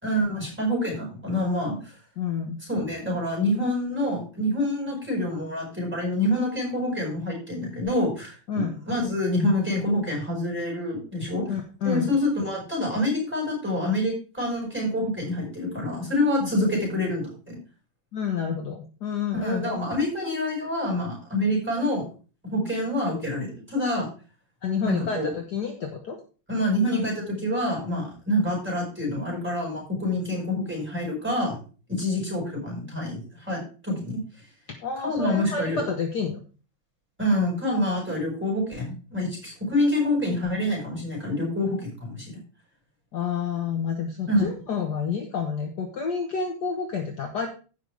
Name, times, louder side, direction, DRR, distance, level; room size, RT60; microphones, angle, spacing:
voice 1, 0.0-1.8 2.7-11.5 11.8-17.6 19.3-22.0 22.5-24.1 24.8-25.3 26.5-31.6 31.9-34.2 35.0-35.8 37.2-42.4 44.3-44.5, left 1 dB, 5° right, -3 dB, 4.9 m, -26 dB
voice 2, 2.2-2.6 8.5-8.8 11.4-12.2 16.4-16.5 18.1-19.8 24.6-26.2 34.7-36.4 43.1-47.5, left 6 dB, 55° left, 3 dB, 1.5 m, -29 dB
15.5 x 5.8 x 3.4 m, 0.36 s
omnidirectional pair, 2.2 m